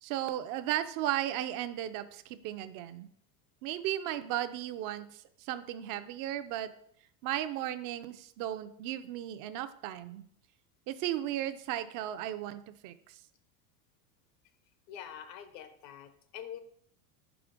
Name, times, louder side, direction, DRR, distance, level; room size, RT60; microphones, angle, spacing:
voice 1, 0.0-3.1 3.6-6.7 7.2-10.2 10.9-13.2, right 12 dB, 45° right, 11 dB, 0.5 m, -35 dB
voice 2, 14.9-16.6, left 9 dB, 80° left, 10 dB, 1.1 m, -45 dB
5.4 x 4.9 x 5.1 m, 0.66 s
supercardioid pair, 140°, 48 cm